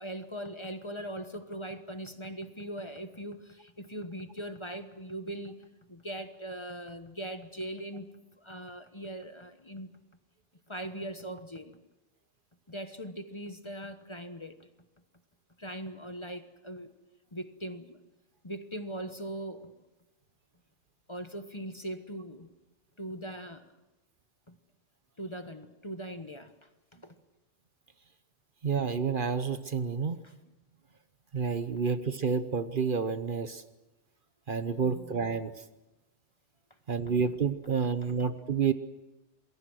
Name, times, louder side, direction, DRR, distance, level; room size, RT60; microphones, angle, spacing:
voice 1, 0.0-5.5 5.9-8.1 8.3-9.9 10.7-11.8 12.7-14.6 15.6-16.9 17.3-18.0 18.4-19.7 21.1-22.5 23.0-23.7 24.5-24.6 25.2-26.5 26.9-27.2 30.2-30.3 34.8-35.1 37.1-37.2 37.8-38.1, right 1 dB, 25° left, 8 dB, 1.3 m, -40 dB
voice 2, 28.6-30.2 31.3-33.6 34.5-35.5 36.9-38.7, right 6 dB, 50° right, 11 dB, 1.0 m, -29 dB
27.5 x 21.5 x 6.3 m, 1.0 s
omnidirectional pair, 1.2 m